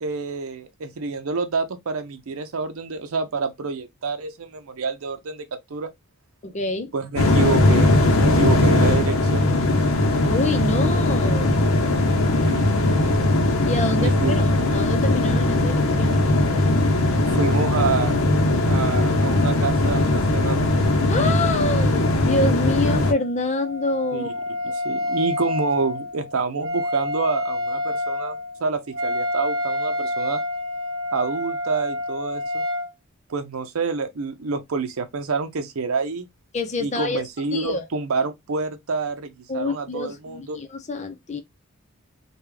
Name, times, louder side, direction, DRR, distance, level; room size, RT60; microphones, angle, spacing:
voice 1, 0.0-5.9 6.9-9.5 12.4-12.7 14.0-14.6 17.3-18.1 18.7-20.6 24.1-24.3 24.8-30.4 31.1-32.6 33.3-36.3 36.8-40.6, right 4 dB, 85° right, 0.6 m, -27 dB
voice 2, 6.4-6.9 10.2-11.6 13.7-14.4 14.7-16.3 21.1-24.4 36.5-37.2 37.5-37.8 39.5-41.4, left 2 dB, 35° left, 0.6 m, -26 dB
sound 1, 7.2-23.1, left 2 dB, 75° left, 0.7 m, -19 dB
Wind instrument woodwind instrument, 22.9-32.9, left 1 dB, 70° right, 1.1 m, -28 dB
3.5 x 2.3 x 3.2 m
head